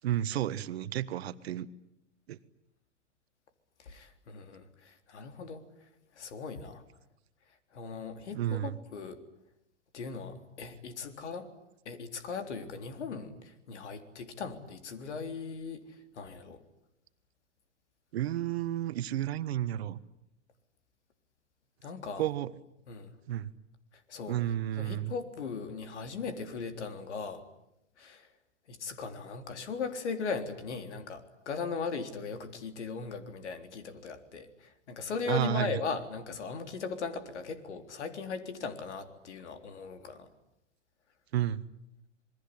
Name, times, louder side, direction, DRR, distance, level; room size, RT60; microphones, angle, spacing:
voice 1, 0.0-1.7 2.3-2.4 8.3-8.8 18.1-20.0 22.2-22.5 23.3-23.5 24.3-25.1 35.3-35.7 41.3-41.6, right 12 dB, 60° right, 14 dB, 1.4 m, -31 dB
voice 2, 3.8-5.6 6.2-6.8 7.7-9.2 9.9-11.5 11.9-15.8 16.2-16.6 21.8-22.3 22.9-23.1 24.1-24.4 24.8-27.4 28.0-28.3 28.7-40.3, left 5 dB, 70° left, 8 dB, 3.7 m, -38 dB
27.5 x 21.0 x 10.0 m, 0.83 s
hypercardioid pair, 110°, 36 cm